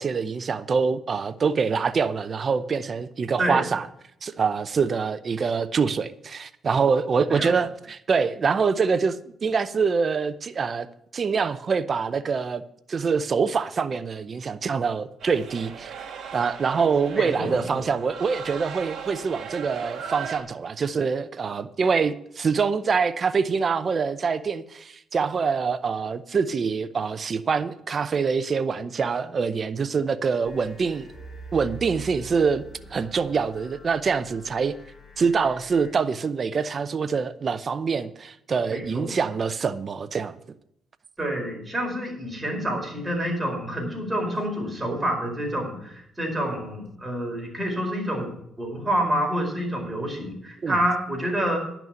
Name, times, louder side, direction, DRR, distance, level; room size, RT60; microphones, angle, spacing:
voice 1, 0.0-3.9 4.2-10.9 11.1-12.6 12.9-16.1 16.3-31.1 31.5-32.6 32.9-34.8 35.2-40.4 50.6-50.8, right 5 dB, 45° right, 0.6 m, -25 dB
sound 1, 15.2-20.4, right 7 dB, 60° right, 3.0 m, -38 dB
voice 2, 17.1-17.8 38.7-39.2 41.2-48.3 48.6-51.6, right 1 dB, 15° right, 4.6 m, -28 dB
sound 2, 30.4-35.9, right 2 dB, 25° left, 4.8 m, -44 dB
11.0 x 6.0 x 8.9 m
cardioid pair, 90°, 0 cm